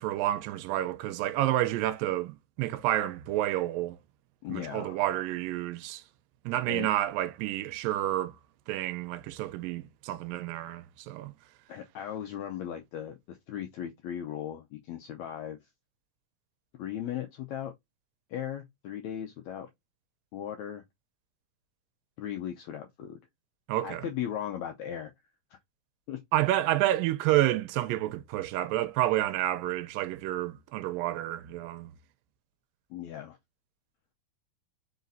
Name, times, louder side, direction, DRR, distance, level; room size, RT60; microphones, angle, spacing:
voice 1, 0.0-4.0 4.5-6.0 6.5-8.4 8.7-11.3 23.7-24.1 26.3-31.9, right 14 dB, 85° right, 2.3 m, -29 dB
voice 2, 4.4-5.0 6.7-6.9 11.7-15.6 16.8-17.7 18.3-19.7 20.3-20.8 22.2-23.2 23.8-25.1 26.1-26.2 32.9-33.4, left 10 dB, 90° left, 1.6 m, -37 dB
5.0 x 4.0 x 2.6 m
omnidirectional pair, 4.0 m